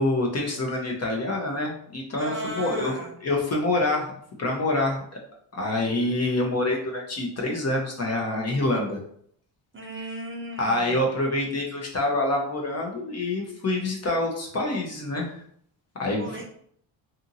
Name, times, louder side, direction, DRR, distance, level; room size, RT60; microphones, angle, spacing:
voice 1, 0.0-4.1 4.4-5.2 5.5-9.0 10.0-10.1 10.6-15.4 16.0-16.4, left 2 dB, 30° left, 0 dB, 0.7 m, -26 dB
voice 2, 2.2-3.1 9.7-10.9 16.2-16.5, right 1 dB, 25° right, -1 dB, 0.6 m, -36 dB
2.6 x 2.6 x 2.6 m, 0.64 s
cardioid pair, 90°, 48 cm